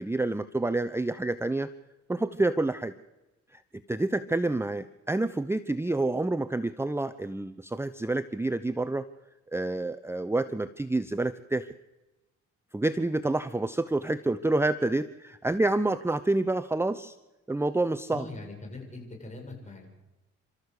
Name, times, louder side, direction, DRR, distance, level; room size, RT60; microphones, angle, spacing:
voice 1, 0.0-1.7 2.1-2.9 3.5-3.6 3.9-9.1 9.5-11.7 12.7-17.2 17.5-18.3, right 2 dB, 10° right, 11 dB, 0.8 m, -28 dB
voice 2, 18.1-19.9, left 2 dB, 25° left, 1 dB, 7.8 m, -41 dB
28.0 x 13.5 x 8.3 m, 1.0 s
cardioid pair, 90°, 30 cm